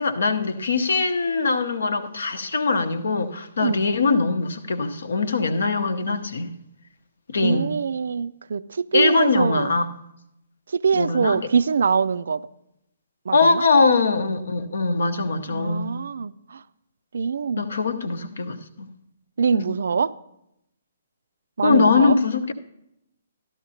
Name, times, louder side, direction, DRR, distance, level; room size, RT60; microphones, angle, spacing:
voice 1, 0.0-6.5 7.3-7.8 8.9-9.9 10.9-11.4 13.3-16.0 17.6-18.9 19.5-19.7 21.6-22.5, left 4 dB, 60° left, 11 dB, 0.9 m, -22 dB
voice 2, 7.4-9.7 10.7-12.4 13.3-13.6 15.5-16.6 17.1-17.7 19.4-20.1 21.6-22.2, right 5 dB, 60° right, 17 dB, 0.3 m, -23 dB
13.5 x 12.0 x 2.8 m, 0.83 s
figure-of-eight pair, 130°, 0 cm